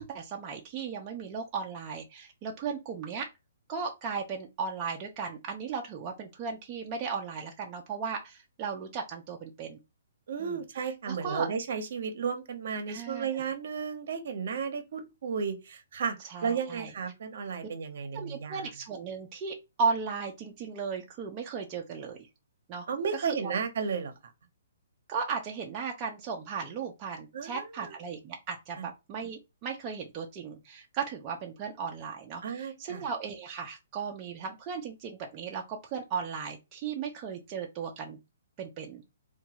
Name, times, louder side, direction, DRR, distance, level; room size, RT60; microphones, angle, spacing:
voice 1, 0.0-3.3 3.7-9.8 10.4-10.6 11.1-11.5 12.9-13.5 16.3-16.9 18.1-22.2 22.7-22.9 23.1-23.4 25.1-38.2 38.6-39.0, right 5 dB, 25° right, 0.5 m, -36 dB
voice 2, 10.3-16.1 16.4-18.6 22.9-24.1 27.3-27.9 28.8-28.9 32.4-33.1, right 6 dB, 60° right, 0.7 m, -33 dB
2.9 x 2.2 x 2.8 m
hypercardioid pair, 160°, 0 cm